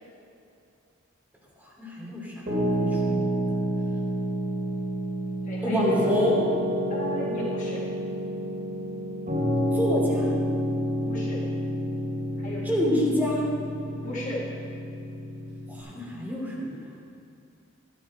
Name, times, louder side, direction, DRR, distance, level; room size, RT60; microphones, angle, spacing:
voice 1, 1.8-3.5 5.6-6.5 9.7-10.3 12.6-13.4 15.7-16.9, equal, 10° right, -6 dB, 3.0 m, -27 dB
Piano, 2.5-15.8, equal, 45° right, 2.9 m, -29 dB
voice 2, 5.4-6.4 6.9-7.8 11.0-11.4 12.4-12.7 14.0-14.4, left 1 dB, 40° left, -5 dB, 1.9 m, -35 dB
13.5 x 10.5 x 4.3 m, 2.6 s
head